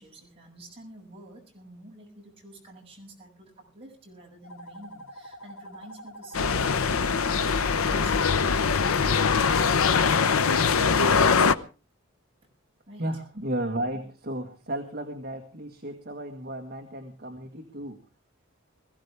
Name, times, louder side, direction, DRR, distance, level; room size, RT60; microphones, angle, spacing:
voice 1, 0.0-10.4 12.9-13.1, right 1 dB, 25° right, -1 dB, 6.6 m, -49 dB
sound 1, 4.4-9.9, equal, 65° left, 1.6 m, -45 dB
sound 2, 6.3-11.6, left 5 dB, 85° left, 0.8 m, -22 dB
voice 2, 13.0-18.0, right 1 dB, 45° right, 3 dB, 1.7 m, -34 dB
21.0 x 15.5 x 3.4 m, 0.34 s
head